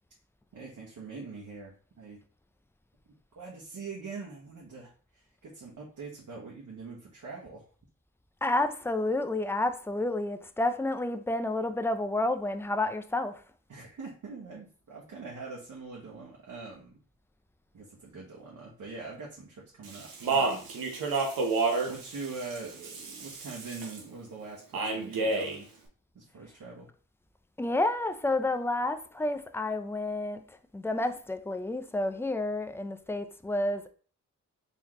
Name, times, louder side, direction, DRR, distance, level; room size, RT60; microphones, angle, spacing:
voice 1, 0.5-2.2 3.1-7.6 13.7-17.0 17.7-20.7 21.9-25.7 26.1-26.9, right 4 dB, 60° right, 1.1 m, -43 dB
voice 2, 8.4-13.4 27.6-30.4 30.7-33.9, left 2 dB, 5° left, 0.5 m, -30 dB
Speech, 19.8-24.0 24.7-25.6, right 3 dB, 80° right, 0.9 m, -30 dB
3.9 x 3.0 x 3.1 m
supercardioid pair, 40°, 35 cm